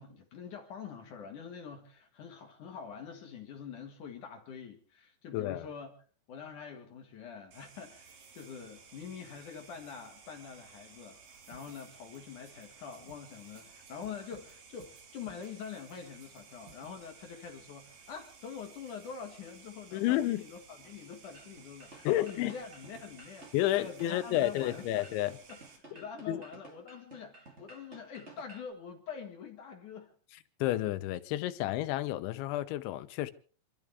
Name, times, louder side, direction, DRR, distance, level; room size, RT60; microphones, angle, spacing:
voice 1, 0.0-5.9 6.3-11.2 11.5-25.0 25.5-25.6 25.9-30.1, left 6 dB, 55° left, 2.5 m, -45 dB
voice 2, 5.3-5.6 19.9-20.4 22.0-22.5 23.5-25.3 26.3-26.4 30.6-33.3, left 14 dB, 85° left, 3.2 m, -30 dB
sound 1, 7.5-25.8, right 5 dB, 55° right, 3.4 m, -56 dB
sound 2, 11.5-12.2 12.5-12.7 12.9-14.5 14.8-16.4 16.7-16.9, right 6 dB, 85° right, 4.8 m, -57 dB
sound 3, 21.3-28.7, right 2 dB, 40° right, 0.9 m, -54 dB
27.5 x 12.5 x 3.4 m
omnidirectional pair, 5.2 m